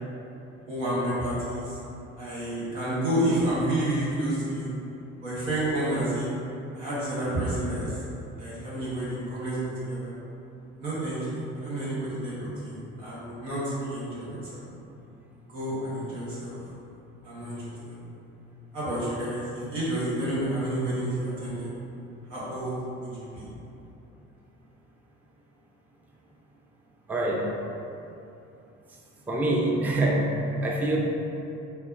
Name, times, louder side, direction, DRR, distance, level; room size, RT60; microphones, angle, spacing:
voice 1, 0.7-1.8 2.2-4.7 5.2-6.3 6.7-8.0 8.4-9.6 9.9-10.1 10.8-14.6 15.5-16.5 17.2-17.9 18.7-21.7 22.3-22.7 23.0-23.5, right 1 dB, 80° right, -9 dB, 1.3 m, -30 dB
voice 2, 27.1-27.5 29.3-30.3 30.6-31.0, right 1 dB, 5° right, -2 dB, 0.4 m, -25 dB
4.3 x 3.4 x 2.5 m, 2.8 s
figure-of-eight pair, 50°, 37 cm